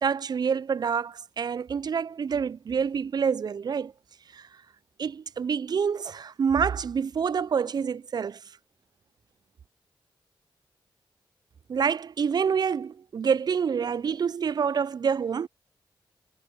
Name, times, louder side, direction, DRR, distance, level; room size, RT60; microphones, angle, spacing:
voice 1, 0.0-3.9 4.3-4.4 5.0-8.4 11.7-15.5, right 6 dB, 55° right, 0.4 m, -27 dB
cardioid pair, 50°, 9 cm